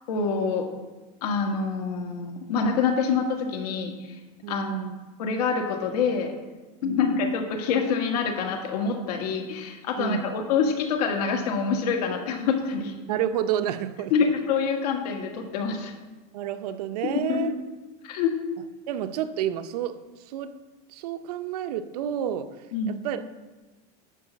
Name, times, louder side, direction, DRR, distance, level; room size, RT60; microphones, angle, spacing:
voice 1, 0.1-0.7 1.2-3.9 4.5-4.7 5.2-6.3 6.8-12.9 14.1-15.9 17.2-17.5 18.0-18.3 22.7-22.9, left 5 dB, 85° left, 3 dB, 1.7 m, -26 dB
voice 2, 4.4-5.0 6.8-7.2 10.0-10.3 13.1-14.1 16.3-17.5 18.9-20.0 20.3-20.5 20.9-22.5 22.9-23.3, right 10 dB, 80° right, 10 dB, 0.7 m, -30 dB
11.0 x 4.7 x 7.4 m, 1.2 s
supercardioid pair, 175°, 20 cm